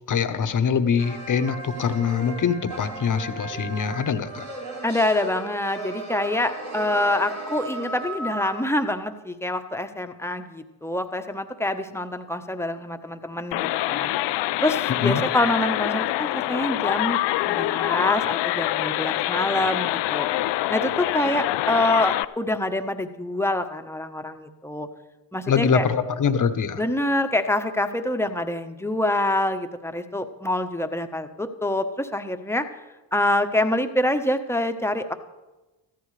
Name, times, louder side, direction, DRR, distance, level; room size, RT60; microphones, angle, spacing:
voice 1, 0.1-4.5 15.0-15.2 25.5-26.8, left 6 dB, 40° left, 10 dB, 1.2 m, -23 dB
sound 1, 1.0-8.6, right 2 dB, 85° right, 2.7 m, -35 dB
voice 2, 4.8-13.6 13.9-14.1 14.6-20.3 20.7-24.9 25.3-25.8 26.8-32.7 33.1-35.1, left 1 dB, 5° left, 7 dB, 1.2 m, -26 dB
sound 2, 13.5-22.3, left 16 dB, 60° left, 0.6 m, -25 dB
14.0 x 14.0 x 3.4 m, 1.1 s
hypercardioid pair, 55°, 48 cm